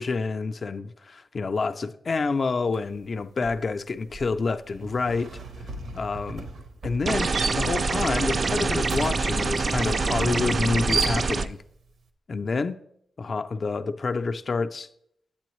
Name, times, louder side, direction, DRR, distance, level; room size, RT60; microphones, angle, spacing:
voice 1, 0.0-5.3 5.9-6.5 6.8-11.6 12.3-12.8 13.2-14.9, left 4 dB, 40° left, 0.3 m, -28 dB
sound 1, 2.7-3.0 3.2-11.7, right 4 dB, 85° right, 0.8 m, -35 dB
sound 2, 7.1-11.5, right 3 dB, 40° right, 0.3 m, -25 dB
8.4 x 8.3 x 3.1 m
wide cardioid pair, 150°, 0 cm